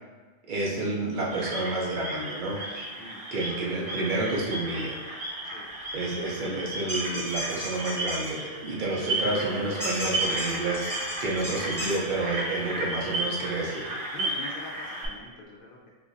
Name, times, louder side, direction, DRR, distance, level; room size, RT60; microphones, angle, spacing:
voice 1, 0.5-2.6 3.3-5.0 5.9-10.9 11.2-13.9, right 2 dB, 55° right, -3 dB, 0.6 m, -30 dB
sound 1, 1.3-15.1, right 1 dB, 80° right, 1.0 m, -34 dB
voice 2, 3.0-3.3 5.5-5.8 8.9-9.6 14.1-15.9, left 2 dB, 60° left, -4 dB, 0.6 m, -43 dB
sound 2, 6.9-8.3 9.8-12.0, equal, 5° left, 0.4 m, -34 dB
3.3 x 2.6 x 2.5 m, 1.4 s
omnidirectional pair, 1.2 m